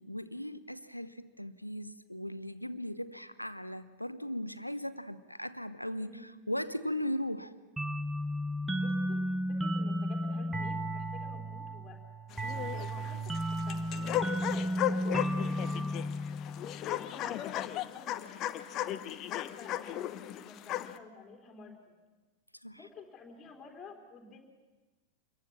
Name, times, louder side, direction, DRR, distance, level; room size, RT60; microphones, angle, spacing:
voice 1, 0.0-7.5 22.6-22.8, equal, 90° left, 13 dB, 0.9 m, -38 dB
voice 2, 5.9-6.4 8.8-12.0 12.5-16.3 16.9-21.9 22.8-24.5, left 4 dB, 20° left, 1 dB, 3.8 m, -52 dB
sound 1, 7.8-17.1, equal, 10° right, 1.1 m, -34 dB
sound 2, 12.3-21.0, left 13 dB, 35° left, 0.9 m, -36 dB
26.5 x 22.0 x 7.2 m, 1.2 s
figure-of-eight pair, 90°, 0 cm